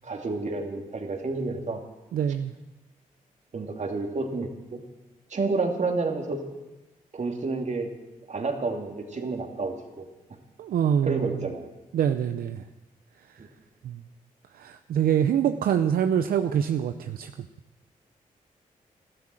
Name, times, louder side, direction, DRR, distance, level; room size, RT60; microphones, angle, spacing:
voice 1, 0.0-1.8 3.5-4.8 5.3-6.4 7.1-7.9 8.3-10.1 11.0-11.7 13.4-13.5, right 3 dB, 50° right, 3 dB, 2.6 m, -30 dB
voice 2, 2.1-2.5 10.6-11.4 11.9-12.6 13.8-14.0 14.5-17.3, right 9 dB, 85° right, 8 dB, 0.6 m, -25 dB
13.0 x 12.5 x 7.6 m, 1.0 s
cardioid pair, 55°, 15 cm